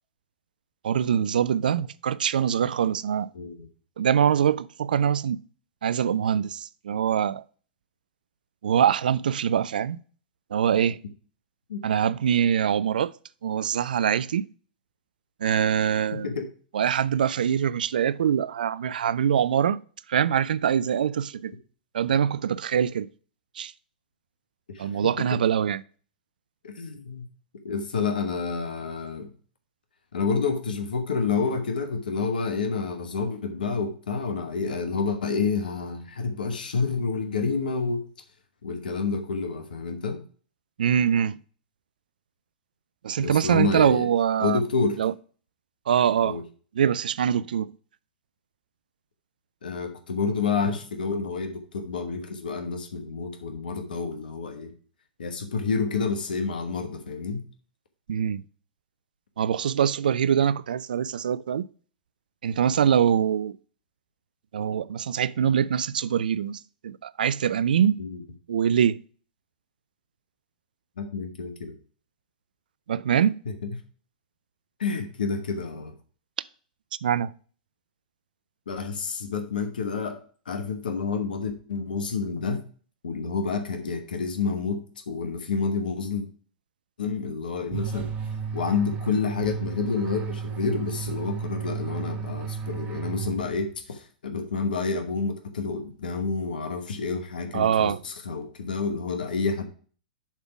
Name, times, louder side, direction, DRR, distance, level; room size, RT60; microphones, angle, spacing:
voice 1, 0.8-3.3 4.0-5.4 5.8-7.4 8.6-10.0 10.5-11.0 11.8-13.1 13.4-14.5 15.4-16.3 16.7-19.8 20.1-21.5 21.9-23.1 23.6-23.7 24.8-25.8 40.8-41.4 43.0-44.6 45.0-45.1 45.9-46.4 46.7-47.7 58.1-58.4 59.4-61.7 62.4-63.6 64.5-68.0 68.5-69.0 72.9-73.4 77.0-77.3 97.5-98.0, right 8 dB, 70° right, 0.4 m, -23 dB
voice 2, 3.3-3.7 11.7-11.8 16.1-16.5 24.7-25.3 26.6-27.2 27.6-29.3 30.1-38.0 38.6-40.2 43.2-44.1 44.4-45.0 46.2-46.4 49.6-54.7 55.2-57.4 68.0-68.2 71.0-71.7 73.6-73.7 74.8-75.9 78.7-80.2 80.5-82.6 83.0-86.3 87.0-88.1 88.5-99.7, left 5 dB, 70° left, 1.1 m, -29 dB
sound 1, 87.7-93.8, right 6 dB, 30° right, 0.8 m, -33 dB
7.3 x 3.6 x 5.9 m
figure-of-eight pair, 110°, 5 cm